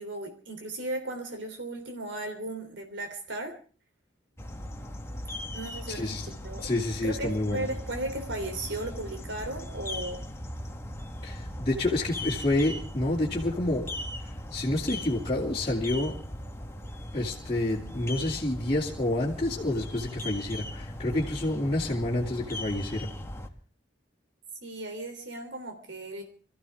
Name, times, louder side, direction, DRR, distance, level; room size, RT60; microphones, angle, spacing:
voice 1, 0.0-3.5 5.5-6.1 6.4-6.6 7.0-10.2 24.6-26.2, right 2 dB, 80° right, 5 dB, 3.4 m, -36 dB
sound 1, 4.4-23.5, left 1 dB, 15° left, 1.5 m, -39 dB
voice 2, 5.9-6.3 6.6-7.7 11.2-13.8 14.5-16.1 17.1-23.1, left 1 dB, 30° left, -6 dB, 2.7 m, -28 dB
26.0 x 14.5 x 3.6 m, 0.40 s
head